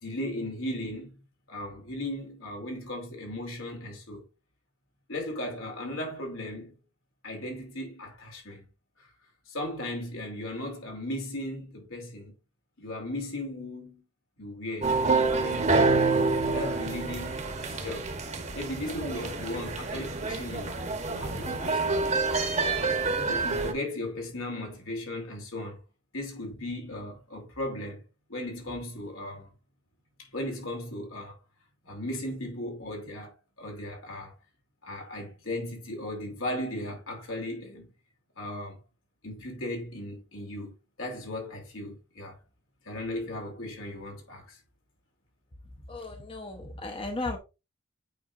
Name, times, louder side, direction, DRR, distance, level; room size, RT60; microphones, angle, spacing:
voice 1, 0.0-1.2 1.5-4.2 5.1-6.8 7.2-8.6 9.0-9.1 9.5-12.3 12.8-14.0 14.4-15.0 15.4-18.1 18.5-20.7 21.1-22.4 23.2-25.8 26.1-28.0 28.3-29.5 30.2-31.4 31.8-34.3 34.8-37.9 38.4-38.8 39.2-40.7 41.0-42.4 42.8-44.6, left 1 dB, 80° left, 2.7 m, -37 dB
sound 1, 14.8-23.7, right 3 dB, 35° right, 0.9 m, -27 dB
voice 2, 45.9-47.4, left 2 dB, 25° left, 0.7 m, -35 dB
8.5 x 4.8 x 2.4 m
head